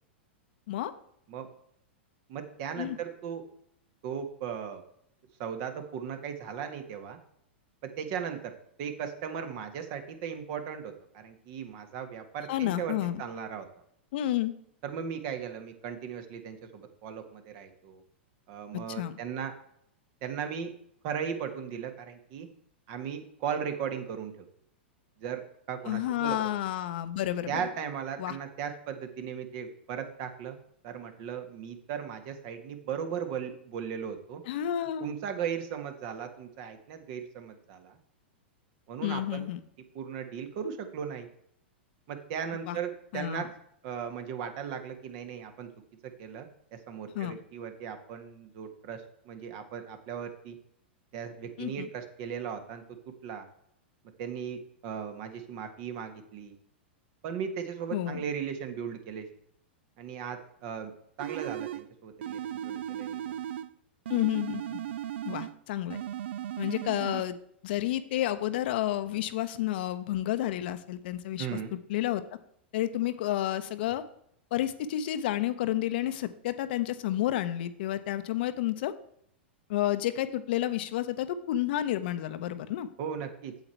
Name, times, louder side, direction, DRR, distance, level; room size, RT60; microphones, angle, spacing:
voice 1, 2.3-3.4 4.0-4.8 5.4-7.2 7.8-8.5 8.8-13.6 14.8-18.0 18.5-19.5 20.2-20.7 21.0-22.5 22.9-24.4 25.2-26.4 27.5-30.6 30.8-34.4 35.0-38.0 38.9-39.5 39.9-41.3 42.1-43.5 43.8-45.7 46.2-46.5 46.9-50.5 51.1-52.8 53.2-53.5 54.2-56.5 57.2-59.3 60.0-60.9 61.2-63.4 71.4-71.7 83.0-83.5, right 7 dB, 50° right, 7 dB, 1.6 m, -37 dB
voice 2, 12.5-13.2 14.1-14.5 18.9-19.1 25.8-27.7 28.2-28.4 34.5-35.1 39.0-39.6 42.7-42.8 43.1-43.5 47.1-47.4 51.6-51.9 57.9-58.2 64.1-64.8 65.2-66.0 66.6-67.4 67.6-71.6 71.9-72.2 72.7-74.0 74.5-78.9 79.7-82.9, left 13 dB, 60° left, 11 dB, 0.8 m, -30 dB
sound 1, 61.2-61.9 62.2-63.7 64.1-65.6 65.9-67.2, right 11 dB, 75° right, 0.4 m, -36 dB
8.2 x 7.9 x 4.5 m, 0.71 s
hypercardioid pair, 110°, 6 cm